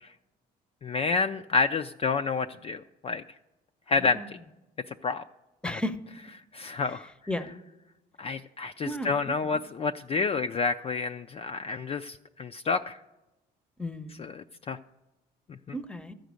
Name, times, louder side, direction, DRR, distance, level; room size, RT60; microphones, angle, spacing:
voice 1, 0.8-3.2 3.9-4.2 5.0-5.2 6.5-7.1 8.2-13.0 14.2-14.3 14.7-14.8, left 4 dB, 35° left, 7 dB, 0.3 m, -29 dB
voice 2, 4.0-4.4 5.6-6.0 6.8-7.5 8.8-9.6 13.8-14.3 15.7-16.1, left 1 dB, 5° left, 11 dB, 0.7 m, -35 dB
13.5 x 5.2 x 8.1 m, 0.99 s
cardioid pair, 100°, 18 cm